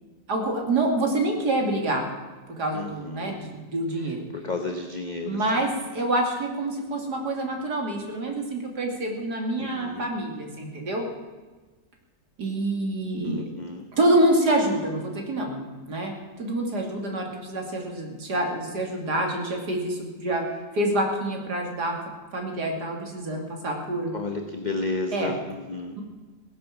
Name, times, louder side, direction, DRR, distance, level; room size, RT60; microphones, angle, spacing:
voice 1, 0.3-2.1 2.5-4.3 5.2-11.1 12.4-13.5 13.9-15.6 15.9-20.4 20.7-22.0 22.3-24.1 25.1-25.4, right 1 dB, 70° right, 2 dB, 3.1 m, -26 dB
voice 2, 2.7-3.4 4.3-5.7 9.6-10.1 13.2-13.8 24.1-26.0, left 3 dB, 30° left, 4 dB, 1.1 m, -32 dB
17.0 x 11.0 x 7.4 m, 1.3 s
omnidirectional pair, 1.8 m